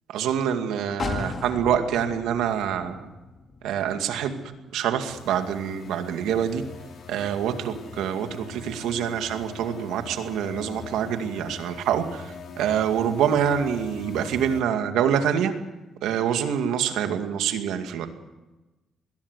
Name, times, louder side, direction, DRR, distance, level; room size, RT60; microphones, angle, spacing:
voice 1, 0.1-3.1 3.6-4.4 4.7-6.6 7.1-15.5 16.0-18.1, right 8 dB, 90° right, 7 dB, 2.2 m, -26 dB
sound 1, 1.0-4.7 5.1-5.2, left 5 dB, 45° left, 2.1 m, -36 dB
sound 2, 5.1-14.6, left 5 dB, 60° left, 4.2 m, -42 dB
22.0 x 17.0 x 8.2 m, 1.1 s
cardioid pair, 90°, 0 cm